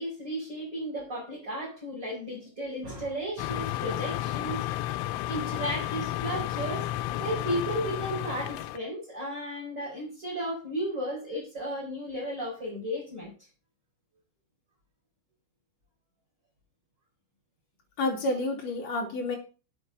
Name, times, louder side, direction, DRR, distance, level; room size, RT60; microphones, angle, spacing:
voice 1, 0.0-4.7 5.3-6.9 7.2-13.3, equal, 20° right, -5 dB, 5.3 m, -34 dB
sound 1, 3.4-8.8, left 14 dB, 85° left, 3.1 m, -32 dB
voice 2, 18.0-19.4, left 2 dB, 40° left, 0 dB, 3.9 m, -29 dB
8.8 x 8.3 x 6.6 m, 0.35 s
omnidirectional pair, 5.5 m